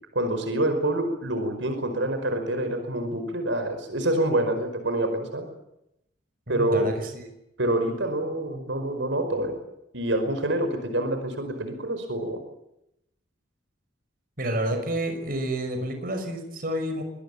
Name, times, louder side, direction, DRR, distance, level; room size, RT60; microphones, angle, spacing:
voice 1, 0.1-5.5 6.5-6.9 7.6-9.6 9.9-12.4, right 1 dB, 75° right, 7 dB, 5.2 m, -26 dB
voice 2, 6.5-7.2 14.4-17.0, right 1 dB, 50° right, 5 dB, 5.9 m, -29 dB
25.0 x 20.0 x 8.8 m, 0.82 s
head